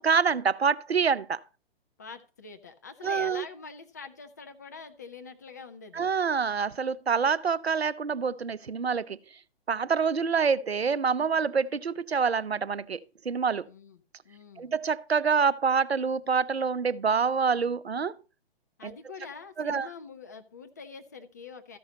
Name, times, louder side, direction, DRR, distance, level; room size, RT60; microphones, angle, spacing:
voice 1, 0.0-1.4 3.0-3.4 5.9-9.2 9.7-13.0 13.3-13.6 14.6-18.1 18.8-18.9 19.6-19.9, right 5 dB, 85° right, 0.6 m, -26 dB
voice 2, 2.0-6.1 13.6-14.7 18.8-21.8, left 5 dB, 20° left, 0.3 m, -45 dB
13.5 x 5.5 x 4.0 m
figure-of-eight pair, 125°, 31 cm